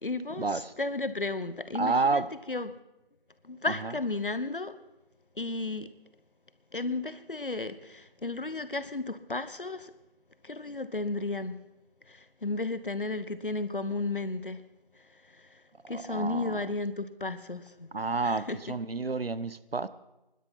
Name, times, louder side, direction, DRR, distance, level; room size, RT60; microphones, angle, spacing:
voice 1, 0.0-2.7 3.4-4.8 5.3-5.9 6.7-9.9 10.4-11.6 12.1-14.6 14.9-17.9 18.2-18.6, left 3 dB, 65° left, 1.1 m, -34 dB
voice 2, 1.7-2.3 15.9-16.6 17.9-19.9, right 3 dB, 80° right, 0.9 m, -29 dB
23.0 x 12.0 x 4.4 m
figure-of-eight pair, 180°, 29 cm